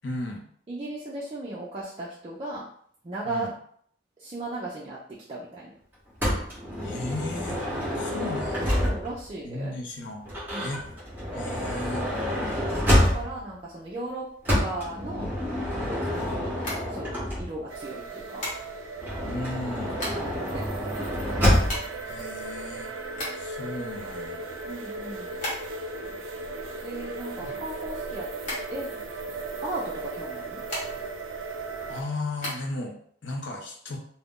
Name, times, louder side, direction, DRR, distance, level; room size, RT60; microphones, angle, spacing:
voice 1, 0.0-0.5 3.2-3.5 6.8-7.7 7.9-8.8 9.4-10.3 10.5-10.9 11.3-12.1 19.2-20.0 22.0-22.9 23.3-24.5 27.4-27.5 31.9-34.0, left 2 dB, 70° left, 1 dB, 0.6 m, -35 dB
voice 2, 0.7-2.7 3.0-3.5 4.2-5.7 8.8-9.7 10.5-10.8 13.0-14.3 14.6-15.3 16.1-18.5 20.1-20.7 24.6-25.3 26.8-28.3 28.7-29.0 29.6-30.6, right 2 dB, 30° right, -6 dB, 0.4 m, -36 dB
Motor vehicle (road) / Sliding door, 6.2-9.3 10.2-13.5 14.4-17.8 19.0-21.9, equal, 10° right, 0.9 m, -27 dB
sound 1, 16.6-17.5 18.4-19.0 19.6-20.4 20.7-20.8 21.0-23.6 24.1-26.0 26.2-28.0 28.4-29.4 30.2-31.2 31.6-32.6, left 1 dB, 40° left, 1.0 m, -36 dB
sound 2, 17.7-32.0, right 3 dB, 90° right, 0.4 m, -37 dB
2.4 x 2.1 x 3.6 m, 0.62 s
head